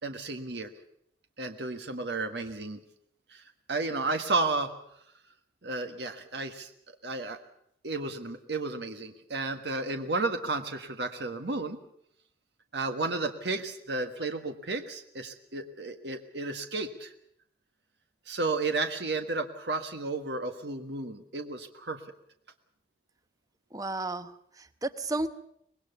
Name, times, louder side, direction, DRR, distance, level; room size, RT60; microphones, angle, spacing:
voice 1, 0.0-0.7 1.4-2.8 3.3-3.4 3.7-4.7 5.6-6.7 7.0-7.4 7.8-11.8 12.7-17.1 18.3-22.0, right 3 dB, 70° right, 6 dB, 1.5 m, -32 dB
voice 2, 23.7-25.3, right 2 dB, 20° right, 11 dB, 1.0 m, -33 dB
24.5 x 20.5 x 7.0 m, 0.72 s
head